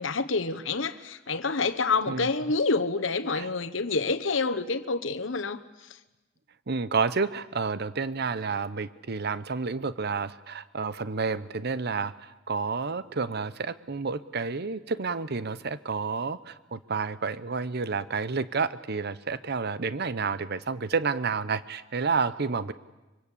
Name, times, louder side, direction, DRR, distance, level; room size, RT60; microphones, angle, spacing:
voice 1, 0.0-5.6, left 3 dB, 70° left, 9 dB, 1.2 m, -27 dB
voice 2, 6.7-12.1 12.5-22.7, right 4 dB, 55° right, 15 dB, 0.9 m, -30 dB
24.5 x 24.0 x 8.5 m, 1.1 s
head